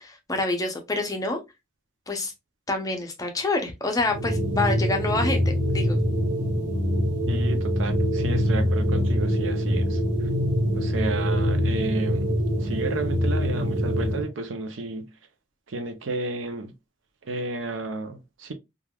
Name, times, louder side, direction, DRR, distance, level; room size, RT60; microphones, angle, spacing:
voice 1, 0.0-1.4 2.1-2.3 2.7-5.4 5.7-6.0, left 2 dB, 20° left, 0.6 m, -27 dB
sound 1, 4.0-14.3, equal, 65° right, 1.1 m, -24 dB
voice 2, 7.3-10.0 10.8-15.1 15.7-16.7 17.3-18.5, right 3 dB, 80° right, 0.6 m, -32 dB
3.3 x 2.3 x 2.2 m
head